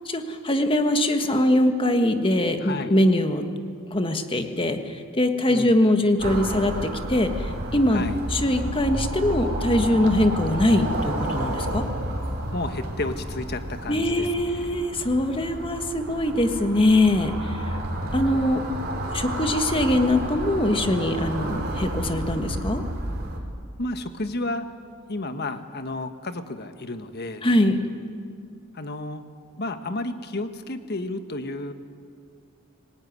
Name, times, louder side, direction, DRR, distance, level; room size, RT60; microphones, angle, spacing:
voice 1, 0.0-3.5 3.9-8.0 8.3-11.8 13.9-17.8 18.1-18.6 19.1-22.8 27.4-27.8, left 1 dB, 25° left, 6 dB, 1.6 m, -22 dB
voice 2, 2.6-3.0 5.5-5.7 7.9-8.1 12.5-14.7 23.8-24.7 25.1-27.4 28.7-29.2 29.6-31.7, left 2 dB, 45° left, 8 dB, 1.4 m, -32 dB
sound 1, 6.2-23.4, right 1 dB, 45° right, 3.7 m, -31 dB
25.5 x 19.0 x 9.6 m, 2.3 s
head